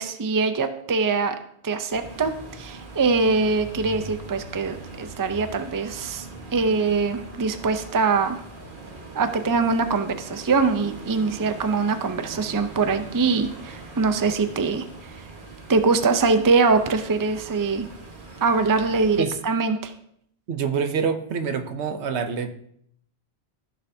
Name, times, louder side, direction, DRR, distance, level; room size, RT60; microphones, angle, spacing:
voice 1, 0.0-1.4 1.6-6.3 6.5-8.4 9.1-14.8 15.7-17.9 18.4-19.9, right 4 dB, 25° right, 9 dB, 0.5 m, -23 dB
sound 1, 1.9-19.2, right 3 dB, 50° right, 1.6 m, -41 dB
voice 2, 20.5-22.5, right 6 dB, 80° right, 8 dB, 1.1 m, -26 dB
14.5 x 6.6 x 2.7 m, 0.69 s
omnidirectional pair, 1.1 m